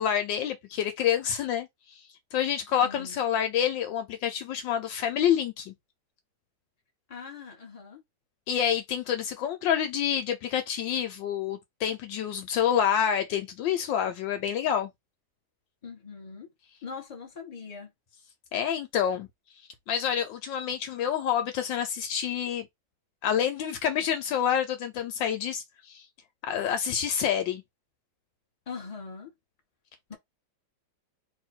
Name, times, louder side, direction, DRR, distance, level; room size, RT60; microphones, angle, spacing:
voice 1, 0.0-2.0 2.3-5.7 8.5-14.9 18.5-19.3 19.9-22.7 23.2-26.1 26.5-27.6, left 9 dB, 75° left, 1.3 m, -28 dB
voice 2, 2.8-3.2 7.1-8.0 15.8-16.5 16.8-17.9 28.7-29.3 30.1-30.2, left 5 dB, 20° left, 1.2 m, -41 dB
2.9 x 2.8 x 4.3 m
omnidirectional pair, 2.2 m